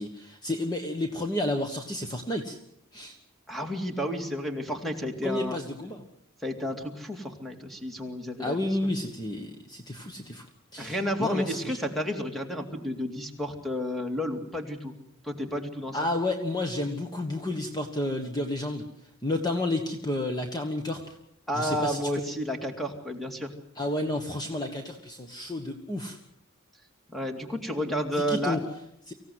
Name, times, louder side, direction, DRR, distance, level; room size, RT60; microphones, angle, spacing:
voice 1, 0.0-2.6 2.9-3.2 5.2-6.0 8.4-10.4 10.7-11.8 15.9-18.9 19.2-21.2 21.5-22.1 23.7-26.2 28.2-28.6 29.1-29.2, left 1 dB, 20° left, 4 dB, 1.3 m, -31 dB
voice 2, 3.5-5.6 6.4-8.6 10.8-14.9 15.2-16.0 21.5-23.5 27.1-28.6, equal, ahead, 4 dB, 2.4 m, -31 dB
25.0 x 16.0 x 7.9 m, 0.77 s
head